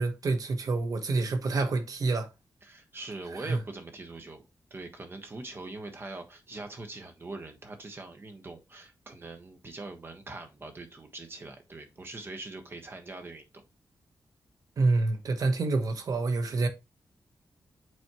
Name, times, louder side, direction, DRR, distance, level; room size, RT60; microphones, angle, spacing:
voice 1, 0.0-2.3 3.3-3.6 14.8-16.7, right 3 dB, 65° right, 1.1 m, -27 dB
voice 2, 2.6-4.4 4.7-13.5, right 2 dB, 35° right, 1.3 m, -42 dB
7.6 x 4.2 x 3.0 m
wide cardioid pair, 110°, 7 cm